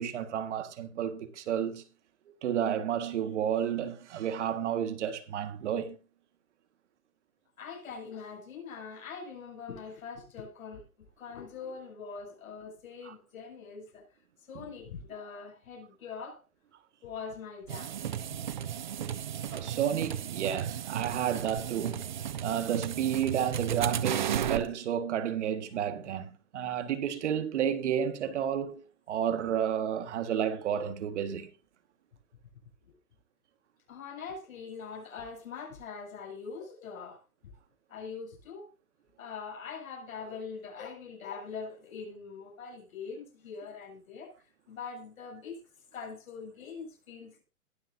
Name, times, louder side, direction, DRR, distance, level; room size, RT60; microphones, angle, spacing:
voice 1, 0.0-1.8 2.4-5.9 13.1-13.2 19.5-22.0 22.4-28.8 29.1-31.5, right 9 dB, 55° right, 1.7 m, -31 dB
voice 2, 7.6-10.8 11.2-14.0 14.5-16.4 17.0-17.9 33.9-37.5 37.9-38.7 39.2-45.6 45.9-47.4, left 5 dB, 70° left, 7.8 m, -43 dB
sound 1, 17.7-24.7, right 9 dB, 35° right, 0.4 m, -34 dB
21.0 x 7.5 x 2.6 m
hypercardioid pair, 150°, 43 cm